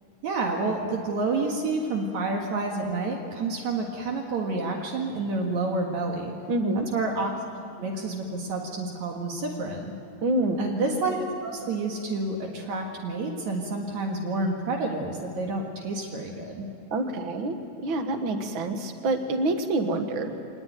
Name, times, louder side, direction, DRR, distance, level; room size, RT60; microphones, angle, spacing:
voice 1, 0.2-6.3 6.7-7.3 7.8-9.9 10.6-11.2 11.4-16.7, right 3 dB, 75° right, 1 dB, 3.1 m, -29 dB
voice 2, 6.5-6.8 10.2-10.6 16.9-17.5 17.8-20.3, right 2 dB, 50° right, 6 dB, 2.0 m, -26 dB
24.5 x 20.0 x 9.2 m, 2.7 s
omnidirectional pair, 3.4 m